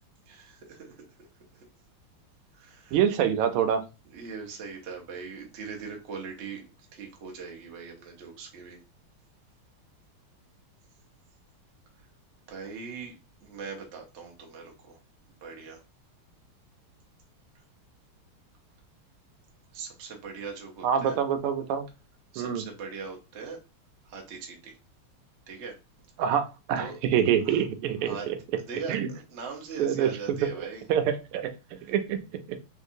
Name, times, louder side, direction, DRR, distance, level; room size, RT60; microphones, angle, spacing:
voice 1, 0.3-1.6 2.5-3.0 4.1-8.8 12.5-13.1 13.4-15.0 15.4-15.8 19.7-21.2 22.3-23.6 24.0-24.8 25.5-25.8 26.8-27.0 27.4-27.6 28.1-28.3 28.7-30.8, right 5 dB, 65° right, 1 dB, 0.6 m, -40 dB
voice 2, 2.9-3.8 20.8-21.8 22.4-22.6 26.2-28.4 28.9-29.1 29.8-31.5 31.9-32.2, right 8 dB, 85° right, 8 dB, 1.5 m, -26 dB
3.7 x 2.7 x 2.5 m, 0.29 s
omnidirectional pair, 2.4 m